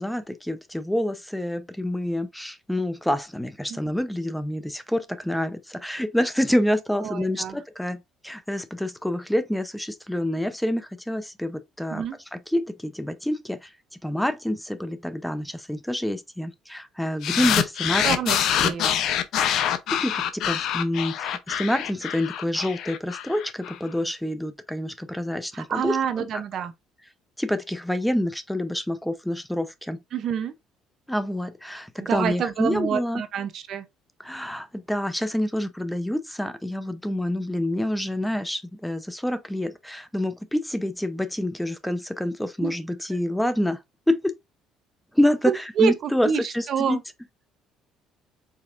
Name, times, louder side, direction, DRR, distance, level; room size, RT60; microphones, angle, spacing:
voice 1, 0.0-12.0 12.3-13.7 14.0-18.1 18.6-18.7 19.5-26.4 27.4-30.0 31.1-33.2 34.2-43.8 44.1-44.3 45.1-47.0, left 1 dB, 5° left, 0.7 m, -27 dB
voice 2, 7.0-7.6 11.9-12.2 18.0-18.4 18.6-19.0 25.5-26.7 30.1-30.5 32.0-33.9 42.6-42.7 45.5-47.0, right 7 dB, 60° right, 0.7 m, -27 dB
sound 1, 17.2-23.8, left 10 dB, 70° left, 0.7 m, -25 dB
5.1 x 4.1 x 2.5 m
supercardioid pair, 85°, 0 cm